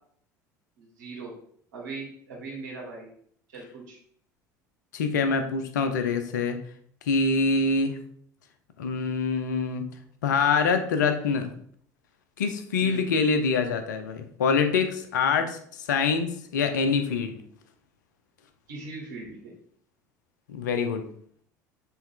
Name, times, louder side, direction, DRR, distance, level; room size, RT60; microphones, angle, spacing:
voice 1, 0.8-1.3 1.7-3.1 3.5-4.0 12.8-13.0 18.7-19.5, right 3 dB, 75° right, -3 dB, 2.4 m, -40 dB
voice 2, 4.9-6.6 7.1-8.0 8.8-9.8 10.2-11.5 12.4-15.6 15.9-17.4 20.5-21.1, left 4 dB, 75° left, 8 dB, 0.8 m, -25 dB
7.1 x 3.5 x 3.8 m, 0.62 s
figure-of-eight pair, 65°, 10 cm